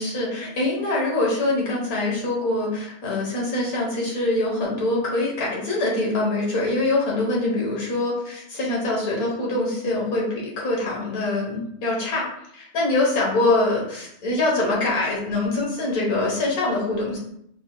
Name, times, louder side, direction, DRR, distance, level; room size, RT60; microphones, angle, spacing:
voice 1, 0.0-12.2 12.5-17.2, left 2 dB, 80° left, -3 dB, 1.7 m, -24 dB
4.2 x 3.8 x 2.3 m, 0.74 s
omnidirectional pair, 1.5 m